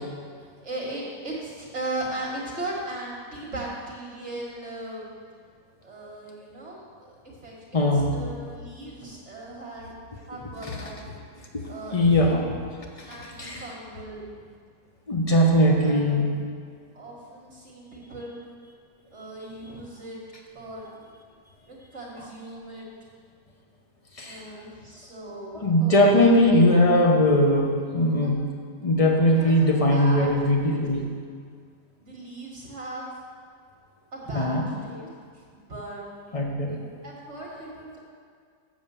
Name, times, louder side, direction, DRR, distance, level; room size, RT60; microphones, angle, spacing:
voice 1, 0.6-5.1 5.8-7.5 8.1-9.9 10.3-11.0 11.7-12.3 13.1-14.4 15.4-16.1 16.9-18.4 19.1-20.2 20.6-21.1 21.6-22.9 24.2-26.6 28.2-28.4 29.3-30.9 32.0-33.1 34.1-35.1 35.3-36.0 37.0-38.0, right 2 dB, 45° right, -4 dB, 1.7 m, -38 dB
voice 2, 7.7-8.1 10.6-10.8 11.5-11.6 11.9-12.4 13.0-13.7 15.1-16.3 24.2-24.4 25.5-28.4 28.8-31.1 34.3-34.6 36.3-36.8, left 1 dB, 25° left, 0 dB, 0.9 m, -20 dB
7.4 x 7.3 x 6.9 m, 2.1 s
omnidirectional pair, 1.8 m